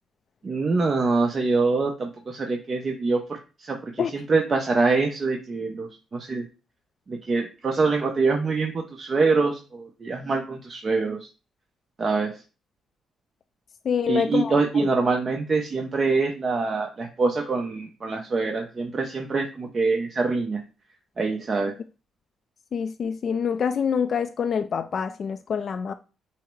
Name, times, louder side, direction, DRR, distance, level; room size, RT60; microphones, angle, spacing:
voice 1, 0.4-6.5 7.1-11.3 12.0-12.4 14.1-20.6 21.2-21.7, right 3 dB, 35° right, 0.7 m, -25 dB
voice 2, 13.8-14.5 22.7-25.9, left 7 dB, 50° left, 0.3 m, -26 dB
5.6 x 2.0 x 4.5 m
cardioid pair, 90°, 0 cm